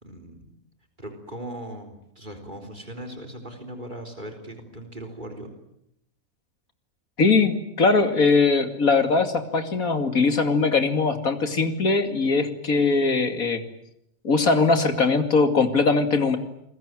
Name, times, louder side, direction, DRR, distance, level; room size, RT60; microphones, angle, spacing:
voice 1, 0.0-0.5 1.0-5.5, right 1 dB, 35° right, 7 dB, 4.0 m, -39 dB
voice 2, 7.2-13.6 14.2-16.4, left 4 dB, 85° left, 8 dB, 2.9 m, -21 dB
28.5 x 21.5 x 9.1 m, 0.78 s
omnidirectional pair, 1.4 m